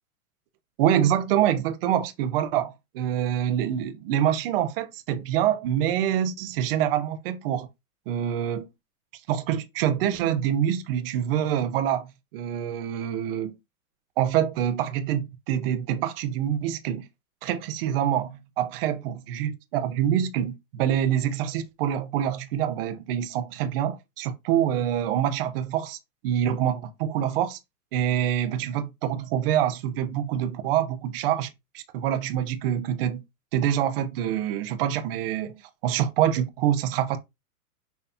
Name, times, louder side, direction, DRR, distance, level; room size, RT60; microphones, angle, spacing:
voice 1, 0.8-7.7 8.1-8.7 9.3-13.5 14.2-17.1 17.4-26.0 26.2-27.6 27.9-31.5 31.7-33.2 33.5-35.5 35.8-37.2, right 10 dB, 40° right, 0.8 m, -26 dB
5.7 x 3.3 x 2.8 m
hypercardioid pair, 150°, 45 cm